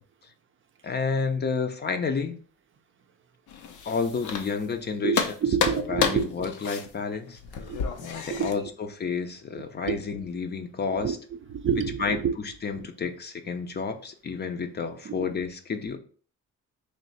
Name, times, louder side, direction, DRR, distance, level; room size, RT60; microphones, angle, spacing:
voice 1, 0.8-2.4 3.9-5.3 5.7-7.4 8.0-11.2 12.0-16.0, left 5 dB, 35° left, 0.5 m, -30 dB
sound 1, 3.5-4.8 5.1-8.5, left 6 dB, 80° left, 0.7 m, -30 dB
voice 2, 5.0-6.3 7.7-7.8 8.3-8.5 9.9-10.0 11.0-11.1 11.5-12.4 12.8-12.9 15.1-15.3, right 7 dB, 40° right, 0.5 m, -28 dB
3.3 x 2.7 x 4.0 m
cardioid pair, 90°, 30 cm